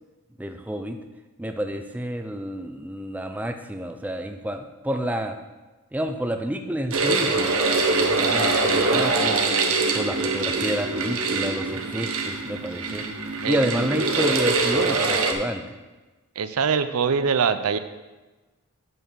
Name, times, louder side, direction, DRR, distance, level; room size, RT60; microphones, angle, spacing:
voice 1, 0.4-1.0 1.4-5.3 5.9-7.5 8.3-9.5 9.9-13.0 13.5-15.6, right 1 dB, 5° right, 5 dB, 0.5 m, -29 dB
sound 1, 6.9-15.3, right 3 dB, 75° right, 1.0 m, -23 dB
voice 2, 16.4-17.8, right 6 dB, 90° right, 11 dB, 0.6 m, -23 dB
8.8 x 4.6 x 6.8 m, 1.2 s
head